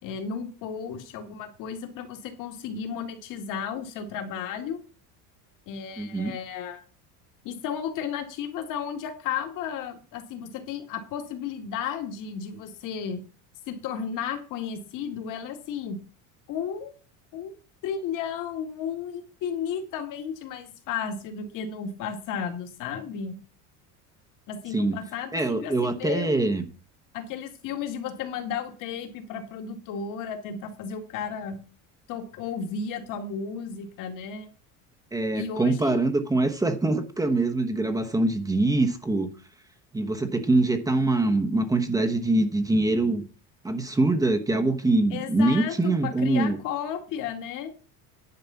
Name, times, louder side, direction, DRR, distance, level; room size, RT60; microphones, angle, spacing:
voice 1, 0.0-4.8 5.7-6.8 7.4-13.2 13.7-16.0 16.5-16.9 17.3-17.5 17.8-23.4 24.5-26.5 27.1-31.6 32.1-34.5 35.3-36.0 45.1-47.7, left 7 dB, 55° left, 2.2 m, -33 dB
voice 2, 6.0-6.3 24.7-25.0 25.3-26.6 35.1-39.3 39.9-43.2 43.6-46.6, right 2 dB, 10° right, 1.0 m, -24 dB
10.5 x 5.0 x 7.1 m
cardioid pair, 150°, 39 cm